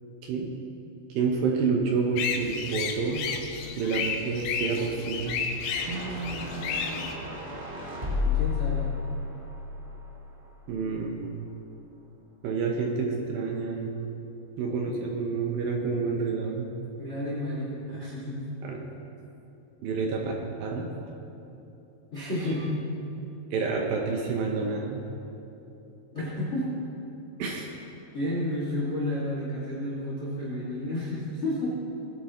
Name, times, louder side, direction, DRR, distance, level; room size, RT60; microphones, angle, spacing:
voice 1, 1.1-3.3 3.8-5.4 5.8-6.7 10.7-11.2 12.4-13.9 14.6-16.7 18.6-18.9 19.8-20.3 20.6-20.9 22.4-22.5 23.5-25.0 27.4-27.7, right 4 dB, 75° right, 0 dB, 2.2 m, -29 dB
sound 1, 2.2-7.1, left 6 dB, 75° left, 2.3 m, -32 dB
sound 2, 5.7-10.9, left 5 dB, 90° right, 0.7 m, -32 dB
voice 2, 8.1-8.9 17.0-18.4 22.1-22.8 26.1-26.7 28.1-31.8, left 1 dB, 30° left, -7 dB, 1.3 m, -31 dB
21.0 x 8.9 x 3.1 m, 3.0 s
omnidirectional pair, 5.1 m